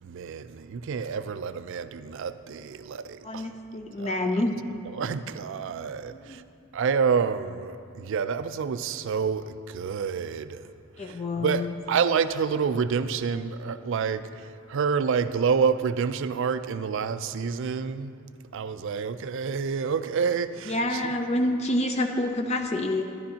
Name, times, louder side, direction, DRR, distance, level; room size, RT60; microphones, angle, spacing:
voice 1, 0.0-3.5 4.0-4.2 5.0-6.4 6.7-10.6 11.0-14.3 14.7-18.1 18.5-21.1, right 6 dB, 65° right, 12 dB, 0.4 m, -28 dB
voice 2, 3.2-4.6 6.1-6.4 11.0-11.7 20.7-23.0, left 1 dB, 30° left, 5 dB, 0.5 m, -27 dB
13.0 x 11.0 x 2.9 m, 2.4 s
head